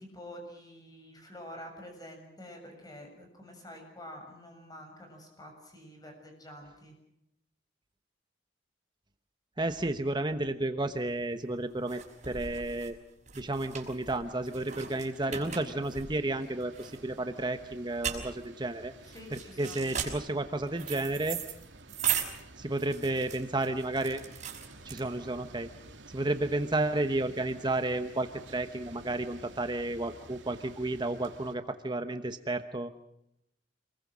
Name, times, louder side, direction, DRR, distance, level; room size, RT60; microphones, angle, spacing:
voice 1, 0.0-6.9 19.0-19.9, equal, 20° left, 3 dB, 7.0 m, -48 dB
voice 2, 9.6-12.0 12.3-13.0 13.3-18.9 19.3-21.4 22.6-24.2 24.8-25.7 26.1-32.9, right 2 dB, 25° right, 8 dB, 1.0 m, -32 dB
sound 1, 11.1-25.4, right 8 dB, 40° right, 5.7 m, -38 dB
sound 2, 14.2-31.5, right 2 dB, 75° right, 2.4 m, -52 dB
28.0 x 21.0 x 6.2 m, 0.81 s
head